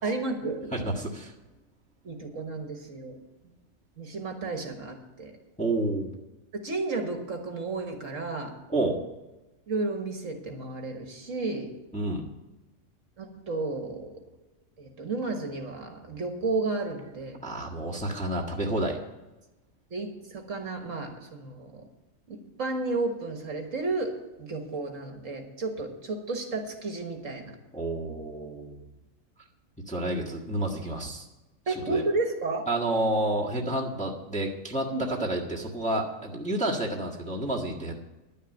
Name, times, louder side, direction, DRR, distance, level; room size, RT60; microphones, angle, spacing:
voice 1, 0.0-0.7 2.0-3.2 4.0-5.3 6.5-8.6 9.7-11.7 13.2-14.2 14.8-17.4 19.9-21.9 22.3-27.6 31.7-32.7 34.9-35.0, right 3 dB, 65° right, 4 dB, 1.8 m, -32 dB
voice 2, 0.7-1.3 5.6-6.1 8.7-9.0 11.9-12.3 17.4-19.0 27.7-28.8 29.9-31.2 31.9-32.0 32.7-37.9, right 1 dB, 5° left, -3 dB, 1.5 m, -29 dB
10.5 x 6.6 x 9.1 m, 1.1 s
omnidirectional pair, 1.5 m